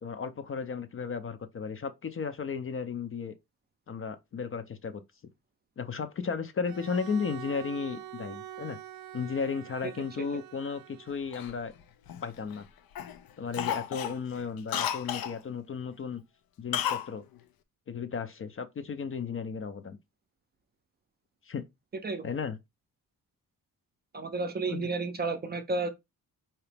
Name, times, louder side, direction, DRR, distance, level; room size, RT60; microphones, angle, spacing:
voice 1, 0.0-3.3 3.9-5.0 5.8-8.8 9.1-11.7 12.2-12.6 13.4-16.2 16.6-17.2 17.9-20.0 21.4-21.6 22.2-22.6 24.7-24.9, left 5 dB, 40° left, 0.5 m, -34 dB
Bowed string instrument, 6.6-11.6, right 12 dB, 85° right, 0.5 m, -45 dB
Cough, 11.3-12.6 13.0-13.2 13.5-15.4 16.7-17.1 17.4-17.5, left 10 dB, 85° left, 0.6 m, -33 dB
voice 2, 24.1-25.9, right 3 dB, 30° right, 0.5 m, -32 dB
4.8 x 2.9 x 3.3 m
wide cardioid pair, 180°, 35 cm